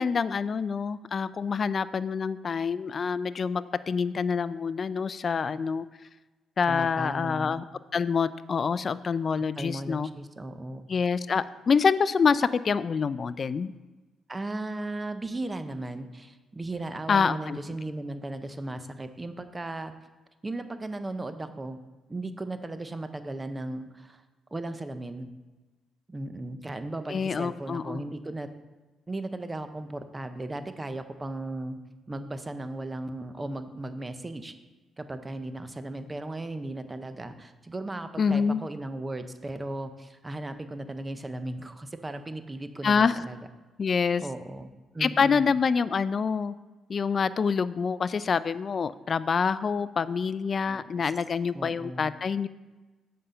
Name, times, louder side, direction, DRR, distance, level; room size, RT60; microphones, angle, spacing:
voice 1, 0.0-5.9 6.6-7.6 7.9-10.1 10.9-13.7 17.1-17.6 27.1-28.0 38.2-38.6 42.8-43.2 43.8-44.2 45.0-46.5 46.9-52.5, left 5 dB, 45° left, 16 dB, 0.3 m, -26 dB
voice 2, 6.7-7.6 9.6-10.9 14.3-19.9 20.4-21.8 22.1-24.2 24.5-25.3 26.1-28.5 29.1-31.8 32.1-34.5 35.0-43.5 44.2-45.5 50.7-51.1 51.5-52.1, right 2 dB, 20° right, 10 dB, 0.7 m, -36 dB
7.8 x 5.6 x 5.1 m, 1.2 s
cardioid pair, 90°, 0 cm